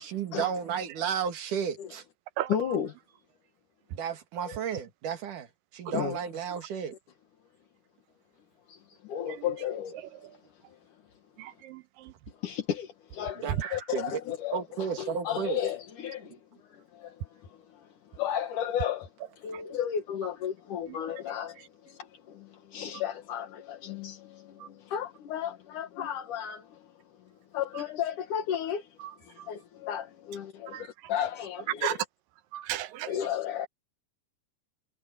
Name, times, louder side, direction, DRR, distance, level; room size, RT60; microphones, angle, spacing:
voice 1, 0.0-2.0 3.9-5.5 5.7-6.9 13.4-14.1 14.5-15.6, right 7 dB, 70° right, 3.5 m, -33 dB
voice 2, 2.5-2.9 4.4-4.8 5.9-6.2 8.7-10.3 10.7-10.8 12.4-19.1 19.4-26.9 27.5-32.0 33.1-33.7, left 9 dB, 70° left, 3.1 m, -34 dB
voice 3, 11.4-12.1 20.9-21.0 24.6-24.7 29.4-29.5 30.7-30.8 31.8-31.9 32.5-33.1, right 13 dB, 85° right, 2.6 m, -34 dB
omnidirectional pair, 3.8 m